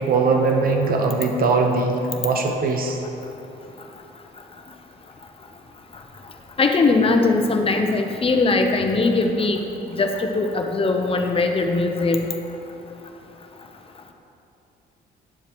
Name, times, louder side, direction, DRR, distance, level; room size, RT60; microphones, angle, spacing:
voice 1, 0.0-3.0, right 4 dB, 55° right, 3 dB, 1.0 m, -20 dB
voice 2, 6.6-9.6 10.0-12.3, left 3 dB, 30° left, 4 dB, 0.8 m, -20 dB
11.0 x 7.2 x 3.0 m, 2.9 s
cardioid pair, 95°, 18 cm